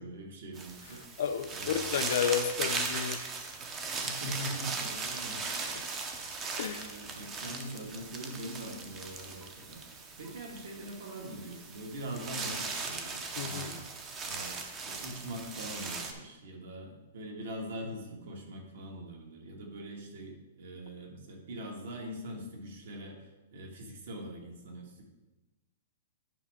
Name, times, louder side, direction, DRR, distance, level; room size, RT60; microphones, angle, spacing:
voice 1, 0.0-1.0 1.5-1.9 3.9-5.8 6.3-13.8 14.2-25.0, right 1 dB, 60° right, 1 dB, 1.8 m, -43 dB
sound 1, 0.6-16.1, right 4 dB, 15° right, 0.6 m, -38 dB
voice 2, 1.0-3.2 6.6-6.9 13.4-13.8, left 8 dB, 55° left, 9 dB, 0.5 m, -32 dB
9.9 x 5.3 x 3.6 m, 1.1 s
hypercardioid pair, 175°, 0 cm